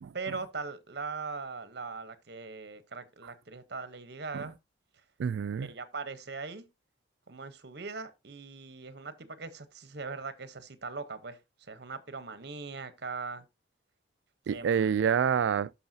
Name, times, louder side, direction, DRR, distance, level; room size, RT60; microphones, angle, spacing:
voice 1, 0.1-4.5 5.6-6.7 7.3-11.4 11.7-13.4 14.5-15.0, right 4 dB, 60° right, 1.0 m, -40 dB
voice 2, 5.2-5.7 14.5-15.7, right 7 dB, 80° right, 0.3 m, -28 dB
13.5 x 5.6 x 2.7 m
head